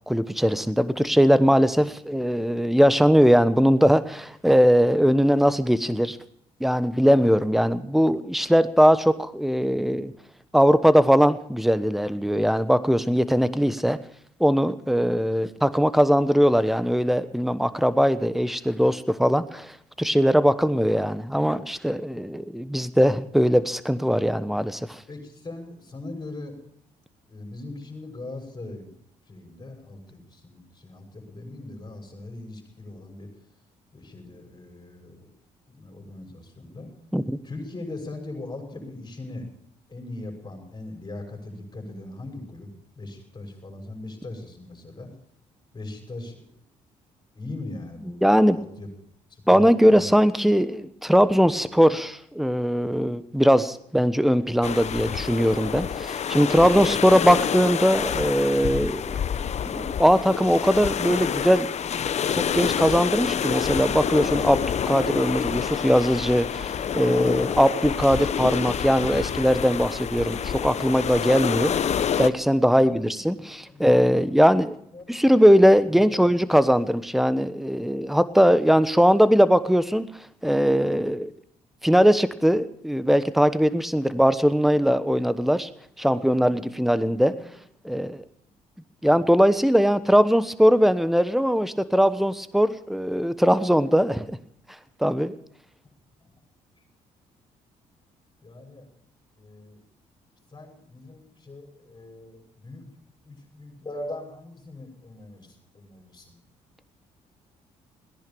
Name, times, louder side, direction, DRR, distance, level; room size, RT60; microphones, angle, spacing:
voice 1, 0.1-6.2 6.6-10.1 10.5-14.0 14.4-25.0 37.1-37.4 48.2-48.6 49.5-59.2 59.7-61.7 62.3-71.7 72.2-74.8 75.1-80.1 80.4-81.3 81.8-85.7 86.0-87.3 87.8-88.2 89.0-94.4 95.0-95.4, equal, ahead, 14 dB, 1.2 m, -20 dB
voice 2, 25.1-26.5 27.3-28.9 29.3-33.3 33.9-35.3 35.7-36.9 37.4-39.5 39.9-45.1 45.7-46.5 47.3-48.2 48.5-48.9 49.3-50.1 72.7-74.3 74.9-75.1 75.9-76.2 86.0-87.6 96.2-96.3 98.4-98.9 99.4-99.8 100.5-102.9 103.2-106.4, left 2 dB, 30° left, 3 dB, 6.2 m, -40 dB
sound 1, 54.6-72.3, left 8 dB, 50° left, 0.8 m, -28 dB
18.0 x 10.5 x 7.0 m, 0.67 s
supercardioid pair, 65°, 14 cm